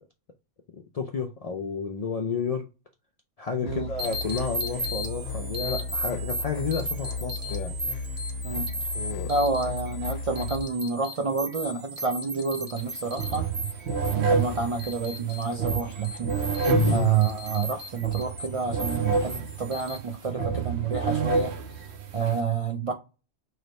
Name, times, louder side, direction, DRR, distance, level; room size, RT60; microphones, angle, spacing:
voice 1, 0.7-2.7 3.4-7.7 8.9-9.3 16.7-17.1, left 4 dB, 60° left, 0.4 m, -30 dB
sound 1, 3.6-10.6, left 3 dB, 90° left, 0.9 m, -35 dB
sound 2, 4.0-20.0, right 1 dB, 20° right, 0.7 m, -37 dB
voice 2, 9.3-13.5 14.1-21.8 22.1-22.9, right 5 dB, 60° right, 0.3 m, -29 dB
sound 3, 12.8-12.9 13.2-22.4, right 4 dB, 75° right, 0.8 m, -29 dB
3.2 x 2.1 x 4.0 m
omnidirectional pair, 1.2 m